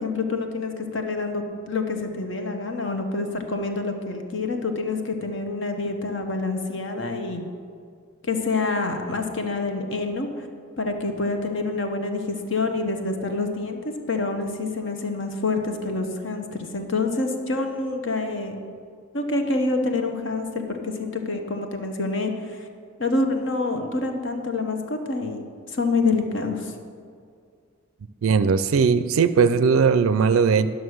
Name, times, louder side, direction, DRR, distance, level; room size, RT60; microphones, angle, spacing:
voice 1, 0.0-7.4 8.2-10.5 10.8-18.5 19.1-22.7 23.0-26.7, left 3 dB, 60° left, 4 dB, 1.0 m, -27 dB
voice 2, 28.2-30.7, right 6 dB, 80° right, 13 dB, 0.4 m, -19 dB
11.0 x 6.3 x 6.4 m, 2.2 s
head